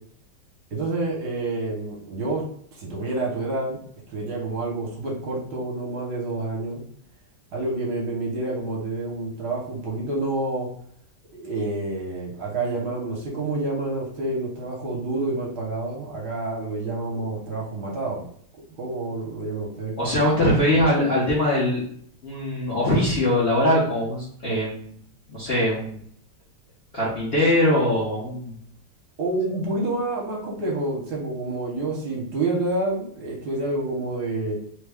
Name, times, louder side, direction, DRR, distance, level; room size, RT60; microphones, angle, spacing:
voice 1, 0.7-2.4 2.7-3.8 4.1-6.8 7.5-10.7 11.3-18.2 18.8-20.0 29.2-34.6, right 2 dB, 65° right, -3 dB, 1.3 m, -28 dB
voice 2, 20.0-21.8 22.2-25.0 25.3-26.0 26.9-28.5, left 1 dB, 50° left, -7 dB, 0.8 m, -22 dB
3.2 x 2.2 x 3.4 m, 0.63 s
omnidirectional pair, 2.0 m